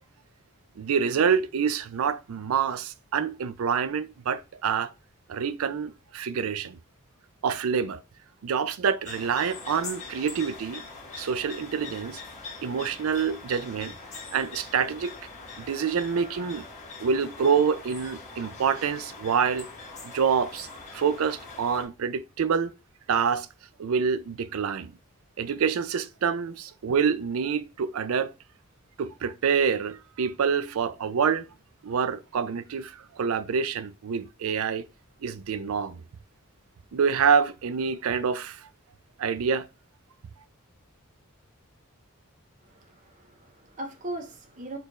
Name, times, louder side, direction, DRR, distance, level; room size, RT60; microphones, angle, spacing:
voice 1, 0.8-4.9 5.3-6.8 7.4-8.0 8.4-10.8 11.2-12.2 12.6-14.0 14.3-15.1 15.6-16.7 17.0-19.7 20.1-22.7 23.1-23.5 23.8-24.9 25.4-28.3 29.0-31.5 31.8-34.9 35.2-36.0 36.9-38.7 39.2-39.7, right 6 dB, 75° right, 0.4 m, -27 dB
sound 1, 9.0-21.9, left 4 dB, 35° left, 1.3 m, -42 dB
voice 2, 42.6-44.8, right 1 dB, 35° right, 0.8 m, -39 dB
4.3 x 3.4 x 3.0 m
head